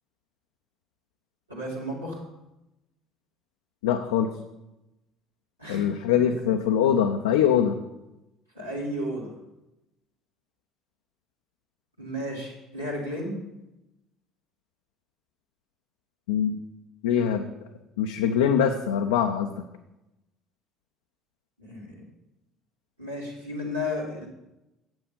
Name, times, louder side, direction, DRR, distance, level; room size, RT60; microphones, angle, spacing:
voice 1, 1.5-2.2 5.6-6.2 8.5-9.3 12.0-13.4 21.6-22.0 23.0-24.3, left 1 dB, 90° right, -8 dB, 2.1 m, -33 dB
voice 2, 3.8-4.3 5.7-7.8 16.3-16.6 17.0-17.5 18.0-19.6, left 8 dB, 70° left, 4 dB, 0.5 m, -23 dB
8.9 x 7.6 x 5.3 m, 0.94 s
figure-of-eight pair, 55°, 0 cm